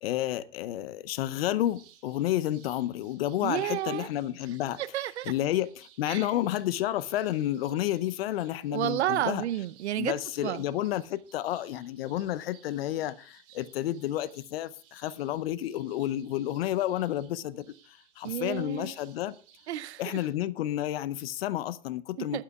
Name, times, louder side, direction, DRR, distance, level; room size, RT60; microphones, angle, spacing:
voice 1, 0.0-4.8 5.3-9.4 10.0-19.3 20.0-22.4, left 13 dB, 55° left, 0.8 m, -31 dB
sound 1, 1.6-20.3, right 9 dB, 40° right, 3.9 m, -60 dB
voice 2, 3.4-4.1 4.8-5.3 6.1-6.3 8.7-10.1 10.4-10.7 18.2-18.9 19.7-20.2 22.2-22.4, right 13 dB, 65° right, 0.8 m, -31 dB
19.0 x 11.5 x 2.4 m
hypercardioid pair, 115°, 36 cm